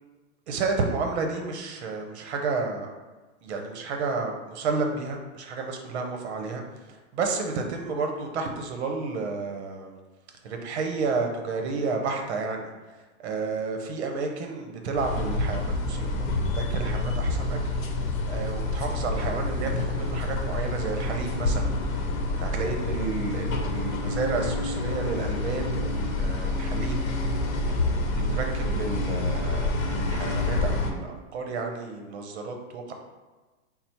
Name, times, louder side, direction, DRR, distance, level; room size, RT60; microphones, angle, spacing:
voice 1, 0.5-2.9 3.4-6.6 6.9-10.0 10.4-16.3 16.5-17.9 18.3-21.7 22.4-27.3 27.6-27.7 28.1-32.9, right 4 dB, 55° right, 3 dB, 0.7 m, -31 dB
sound 1, 15.0-30.9, left 2 dB, 90° left, 0.8 m, -28 dB
4.1 x 2.0 x 4.3 m, 1.2 s
supercardioid pair, 180°, 40 cm